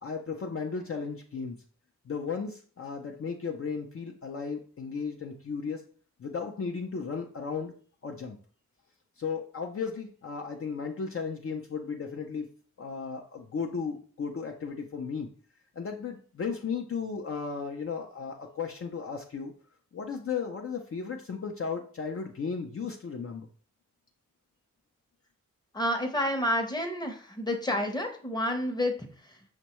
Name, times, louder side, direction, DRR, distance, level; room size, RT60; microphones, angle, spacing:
voice 1, 0.0-1.6 2.1-5.8 6.2-7.7 8.0-8.4 9.2-12.5 12.8-15.3 15.8-19.5 19.9-23.5, left 5 dB, 45° left, 2 dB, 0.5 m, -35 dB
voice 2, 25.7-29.4, left 1 dB, 15° left, 5 dB, 0.7 m, -30 dB
5.2 x 2.2 x 2.9 m, 0.43 s
cardioid pair, 50°, 31 cm